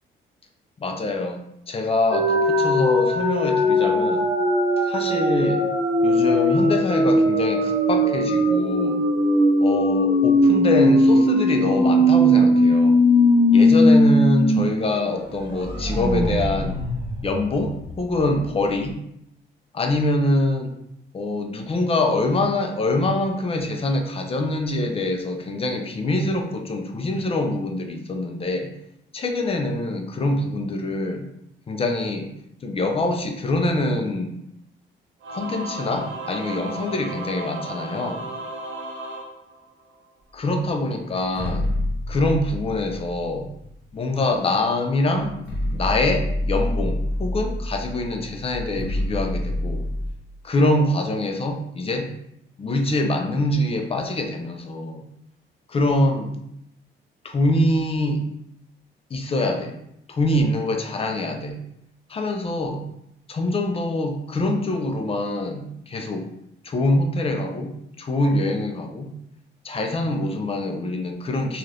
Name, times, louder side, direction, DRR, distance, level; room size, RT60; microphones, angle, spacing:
voice 1, 0.8-4.2 4.8-5.6 6.0-9.0 9.6-13.0 13.5-16.8 17.2-19.0 19.7-20.7 21.1-28.7 29.1-31.3 31.7-32.3 32.6-34.4 35.3-38.3 40.3-41.7 42.1-43.5 43.9-45.3 45.7-49.9 50.4-52.1 52.6-55.0 55.7-56.4 57.2-58.2 59.1-59.8 60.1-61.6 62.1-62.8 63.3-66.3 66.6-69.1 69.6-71.6, left 2 dB, 30° left, 4 dB, 0.5 m, -24 dB
sound 1, 2.1-14.6 14.9-15.0 15.4-18.1, equal, 25° right, 0.7 m, -19 dB
Singing / Musical instrument, 35.2-40.1, right 2 dB, 75° right, 0.6 m, -34 dB
sound 2, 41.3-44.0 44.7-44.8 45.2-50.1, left 1 dB, 50° left, 1.0 m, -28 dB
2.5 x 2.4 x 3.2 m, 0.77 s
cardioid pair, 90°, 20 cm